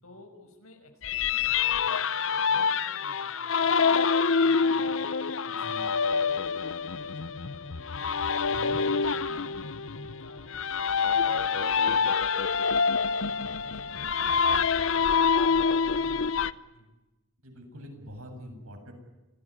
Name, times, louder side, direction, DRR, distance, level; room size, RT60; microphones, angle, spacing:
voice 1, 0.0-5.0 6.3-8.1 8.7-12.4 13.2-17.0, left 1 dB, 85° left, 5 dB, 5.9 m, -54 dB
sound 1, 1.0-16.5, left 5 dB, 65° left, 0.8 m, -26 dB
voice 2, 5.4-5.9 8.5-8.8 13.4-13.5 17.4-18.9, equal, 80° right, 4 dB, 7.7 m, -44 dB
26.0 x 18.0 x 9.9 m, 1.1 s
head